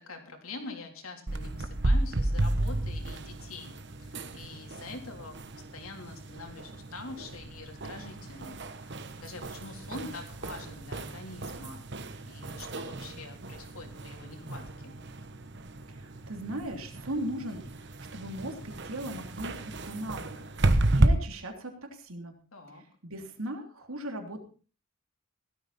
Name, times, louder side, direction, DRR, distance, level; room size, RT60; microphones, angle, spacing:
voice 1, 0.0-8.9 9.2-11.8 12.3-14.9 22.5-22.8, left 3 dB, 90° left, 3 dB, 3.6 m, -45 dB
sound 1, 1.3-21.1, right 2 dB, 55° right, 1.2 m, -33 dB
voice 2, 15.9-21.7 22.0-22.3 23.0-24.4, right 1 dB, 90° right, 4 dB, 3.2 m, -38 dB
16.5 x 13.0 x 4.2 m, 0.38 s
head